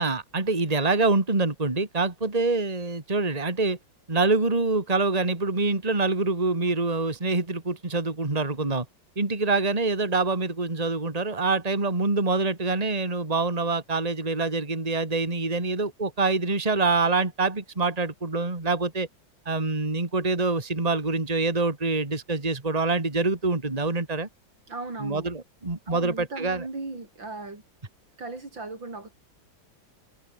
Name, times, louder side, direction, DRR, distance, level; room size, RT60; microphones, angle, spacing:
voice 1, 0.0-3.8 4.1-8.9 9.2-19.1 19.5-24.3 25.0-26.6, right 3 dB, 20° right, 2.7 m, -25 dB
voice 2, 24.7-25.3 25.9-27.6 28.2-29.1, right 3 dB, 80° right, 6.3 m, -37 dB
omnidirectional pair, 2.0 m